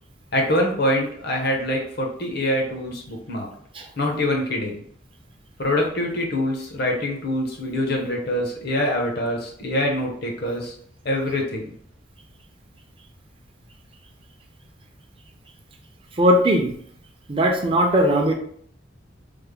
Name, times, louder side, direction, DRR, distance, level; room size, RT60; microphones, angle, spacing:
voice 1, 0.3-3.5 4.0-4.8 5.6-10.7 11.0-11.6, left 1 dB, 55° left, 0 dB, 0.8 m, -24 dB
voice 2, 16.2-16.7 17.3-18.3, equal, 30° right, 3 dB, 0.5 m, -18 dB
3.3 x 2.0 x 3.6 m, 0.63 s
head